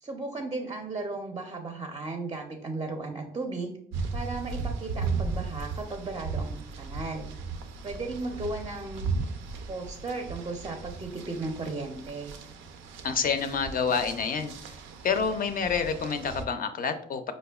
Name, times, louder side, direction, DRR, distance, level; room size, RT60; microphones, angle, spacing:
voice 1, 0.0-3.7 4.1-7.3 7.8-9.1 9.7-12.3, right 3 dB, 20° right, 3 dB, 0.4 m, -35 dB
sound 1, 3.9-16.5, right 4 dB, 90° right, 0.4 m, -36 dB
voice 2, 13.0-14.5 15.0-17.3, left 6 dB, 45° left, 8 dB, 0.4 m, -28 dB
5.0 x 2.1 x 2.2 m, 0.65 s
cardioid pair, 90°, 20 cm